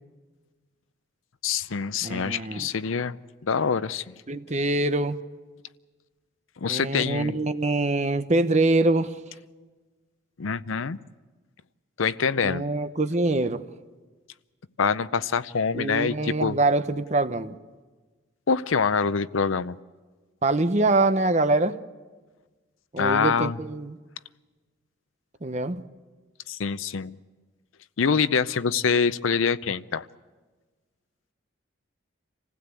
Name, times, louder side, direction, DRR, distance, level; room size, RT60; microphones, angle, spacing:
voice 1, 1.4-3.2 3.4-4.1 6.6-7.4 10.4-11.0 12.0-12.7 14.8-16.6 18.5-19.8 23.0-23.6 26.5-27.2 28.0-30.1, left 5 dB, 85° left, 15 dB, 0.6 m, -25 dB
voice 2, 2.0-2.7 4.3-5.2 6.7-9.2 12.4-13.6 15.7-17.6 20.4-21.8 22.9-24.0 25.4-25.8, right 2 dB, 35° right, 10 dB, 0.8 m, -24 dB
26.5 x 16.0 x 8.3 m, 1.4 s
head